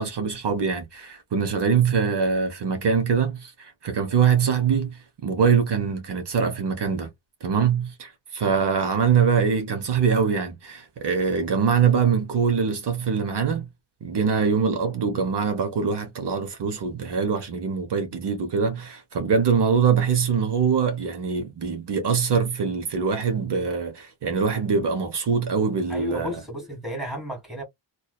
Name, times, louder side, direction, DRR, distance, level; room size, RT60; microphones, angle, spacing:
voice 1, 0.0-7.1 7.4-13.6 14.0-26.3, right 6 dB, 70° right, 0.8 m, -23 dB
voice 2, 25.9-27.6, left 1 dB, ahead, 1.6 m, -33 dB
2.6 x 2.2 x 2.2 m
wide cardioid pair, 100°, 43 cm